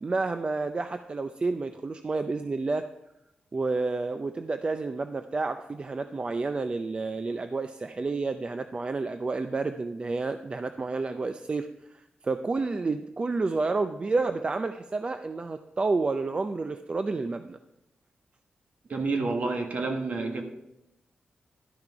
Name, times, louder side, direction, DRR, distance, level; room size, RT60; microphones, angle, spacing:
voice 1, 0.0-2.8 3.5-17.6, right 3 dB, 35° right, 9 dB, 0.4 m, -30 dB
voice 2, 18.9-20.4, right 3 dB, 60° right, 4 dB, 1.4 m, -29 dB
12.0 x 5.9 x 4.5 m, 0.90 s
cardioid pair, 85°, 3 cm